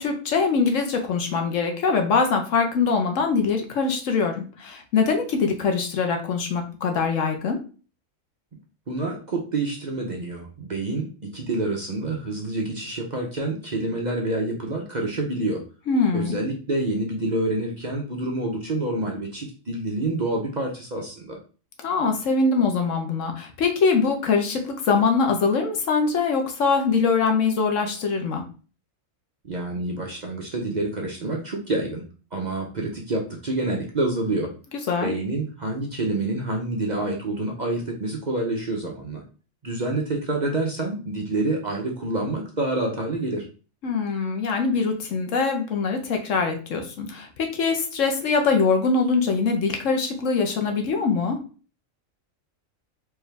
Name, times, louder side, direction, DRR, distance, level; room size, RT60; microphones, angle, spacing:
voice 1, 0.0-7.6 15.9-16.4 21.8-28.4 34.9-35.1 43.8-51.4, left 4 dB, 70° left, 4 dB, 1.2 m, -23 dB
voice 2, 8.9-15.6 16.1-21.4 29.4-32.0 32.3-34.5 35.0-39.2 39.6-43.4, right 2 dB, 40° right, 0 dB, 0.7 m, -27 dB
4.6 x 2.8 x 3.3 m, 0.36 s
omnidirectional pair, 1.4 m